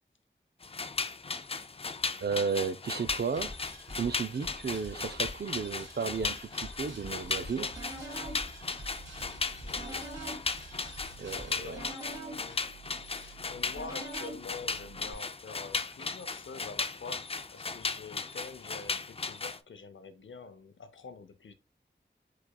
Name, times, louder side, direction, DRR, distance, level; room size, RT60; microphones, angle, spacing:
sound 1, 0.6-19.6, left 4 dB, 30° left, 0.4 m, -37 dB
voice 1, 2.2-3.5 3.9-7.7 11.2-11.8, right 5 dB, 60° right, 0.5 m, -33 dB
sound 2, 3.1-11.8, equal, 80° right, 1.8 m, -48 dB
sound 3, 7.2-15.1, right 2 dB, 15° right, 2.0 m, -46 dB
voice 2, 9.6-10.1 11.5-21.5, left 4 dB, 85° left, 0.6 m, -46 dB
4.8 x 4.0 x 2.3 m
wide cardioid pair, 50°, 19 cm